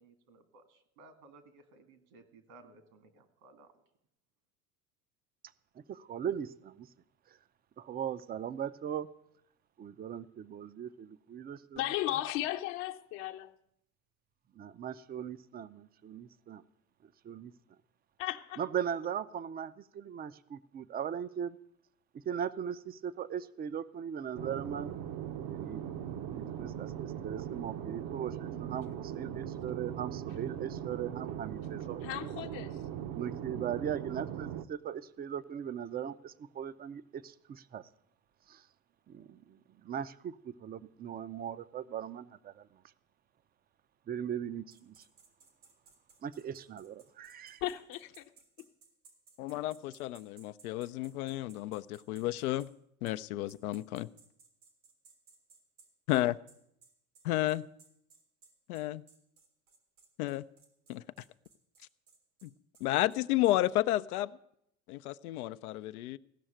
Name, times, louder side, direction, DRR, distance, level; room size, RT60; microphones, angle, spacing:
voice 1, 0.0-3.7, right 3 dB, 70° right, 2.2 m, -58 dB
voice 2, 5.9-6.9 7.3-7.4 7.8-9.1 9.8-11.8 14.6-16.6 17.0-17.5 18.6-21.6 22.1-24.9 25.5-25.8 26.3-32.3 33.1-37.9 38.5-38.7 39.1-42.8 44.1-45.0 46.2-47.6, right 8 dB, 20° right, 0.5 m, -39 dB
voice 3, 11.8-13.5 18.2-18.6 32.0-32.8 47.6-48.2, left 14 dB, 60° left, 1.0 m, -35 dB
sound 1, 24.4-34.7, right 10 dB, 50° right, 0.8 m, -40 dB
sound 2, 44.7-52.7 53.1-53.2 53.5-63.6, right 5 dB, 90° right, 3.2 m, -61 dB
voice 4, 49.4-52.7 53.0-54.1 56.1-56.4 57.2-57.6 58.7-59.0 60.2-60.4 60.9-61.0 62.4-62.5 62.8-64.3 64.9-66.2, left 15 dB, 75° left, 0.6 m, -31 dB
16.0 x 6.3 x 8.9 m
hypercardioid pair, 85°, 44 cm